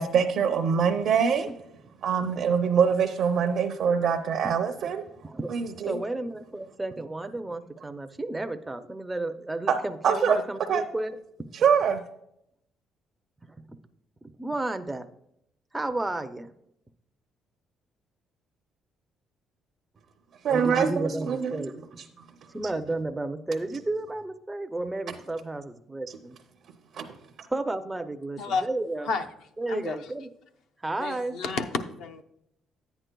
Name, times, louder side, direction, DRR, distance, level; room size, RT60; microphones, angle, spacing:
voice 1, 0.0-1.5 2.0-5.0 5.5-6.0 9.7-9.8 10.0-10.4 10.7-10.8 11.5-12.0 20.4-21.6 26.9-27.1, right 7 dB, 55° right, 3 dB, 0.5 m, -24 dB
voice 2, 5.9-11.2 14.2-15.1 15.7-16.5 20.5-21.7 22.5-26.4 27.5-29.1 29.6-30.3 30.8-31.4, right 2 dB, 10° right, 7 dB, 0.4 m, -32 dB
voice 3, 28.4-28.7 29.0-29.3 29.7-30.0 31.0-32.2, left 4 dB, 70° left, 5 dB, 0.7 m, -30 dB
10.5 x 8.9 x 2.2 m, 0.76 s
cardioid pair, 160°, 0 cm